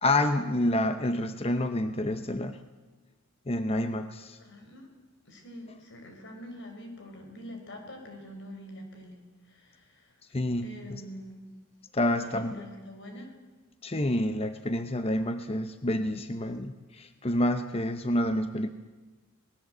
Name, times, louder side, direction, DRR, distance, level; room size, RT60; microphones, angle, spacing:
voice 1, 0.0-2.6 3.5-4.4 10.3-11.0 11.9-12.6 13.8-18.7, left 1 dB, 25° left, 9 dB, 0.8 m, -28 dB
voice 2, 4.4-4.9 5.3-9.2 9.5-10.1 10.6-11.4 12.1-13.3, equal, 55° left, 3 dB, 5.4 m, -45 dB
26.5 x 19.5 x 7.9 m, 1.2 s
head